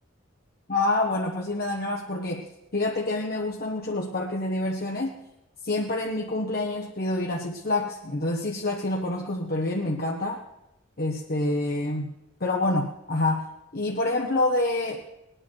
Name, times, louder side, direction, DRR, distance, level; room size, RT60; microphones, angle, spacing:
voice 1, 0.7-2.5 2.7-5.2 5.6-10.4 11.0-12.1 12.4-13.5 13.7-15.0, left 2 dB, 50° left, -1 dB, 1.1 m, -27 dB
19.5 x 10.0 x 4.6 m, 0.85 s
head